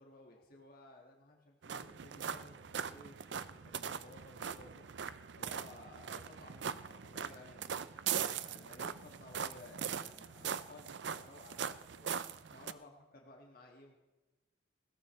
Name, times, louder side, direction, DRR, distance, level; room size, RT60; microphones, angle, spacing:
voice 1, 0.0-4.9 5.4-7.8 8.1-12.1 12.5-12.9 13.2-13.9, left 2 dB, 50° left, -1 dB, 1.9 m, -56 dB
sound 1, 1.6-12.7, right 7 dB, 65° right, 0.5 m, -41 dB
20.5 x 16.0 x 3.3 m, 1.1 s
head